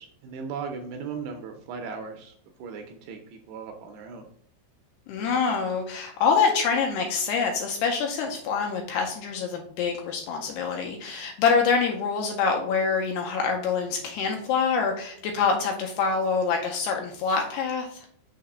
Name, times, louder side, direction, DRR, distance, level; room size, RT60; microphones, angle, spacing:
voice 1, 0.0-2.3 2.6-4.3, right 5 dB, 80° right, 4 dB, 2.4 m, -37 dB
voice 2, 5.1-18.0, left 5 dB, 80° left, 1 dB, 2.4 m, -25 dB
6.5 x 2.9 x 5.3 m, 0.62 s
omnidirectional pair, 5.2 m